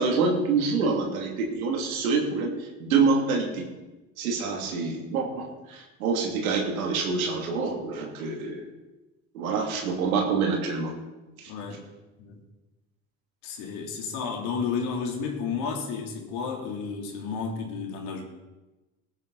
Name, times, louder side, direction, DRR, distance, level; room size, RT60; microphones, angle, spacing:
voice 1, 0.0-3.7 4.2-8.6 9.3-10.9 11.4-11.5, right 4 dB, 85° right, 0 dB, 2.9 m, -26 dB
voice 2, 11.5-11.8 12.2-12.4 13.4-18.2, left 5 dB, 70° left, 0 dB, 3.3 m, -32 dB
19.0 x 9.8 x 4.1 m, 1.1 s
hypercardioid pair, 70°, 41 cm